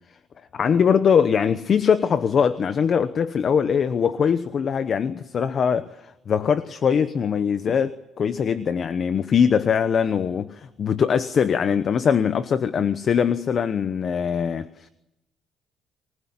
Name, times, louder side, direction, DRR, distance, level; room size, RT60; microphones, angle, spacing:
voice 1, 0.5-14.9, left 7 dB, 35° left, 0.9 m, -22 dB
25.5 x 20.0 x 9.6 m
cardioid pair, 165°, 0 cm